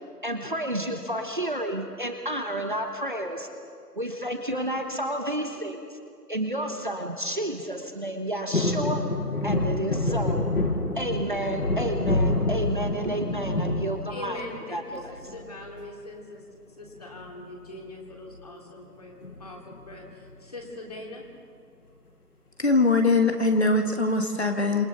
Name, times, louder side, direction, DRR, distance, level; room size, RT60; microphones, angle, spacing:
voice 1, 0.2-3.5 3.9-5.8 6.3-9.0 9.4-10.5 11.0-14.4 14.7-15.1, right 1 dB, 30° right, 4 dB, 1.2 m, -30 dB
sound 1, 8.5-14.7 15.1-15.7 17.0-17.4 17.7-17.8 18.1-18.4 19.2-20.1 20.6-20.7, left 2 dB, 75° left, 5.7 m, -27 dB
voice 2, 14.1-16.4 16.8-21.2 24.6-24.8, left 2 dB, 25° left, -1 dB, 2.8 m, -42 dB
voice 3, 22.6-24.9, left 3 dB, 45° left, 4 dB, 1.6 m, -22 dB
30.0 x 27.5 x 4.0 m, 2.2 s
figure-of-eight pair, 175°, 46 cm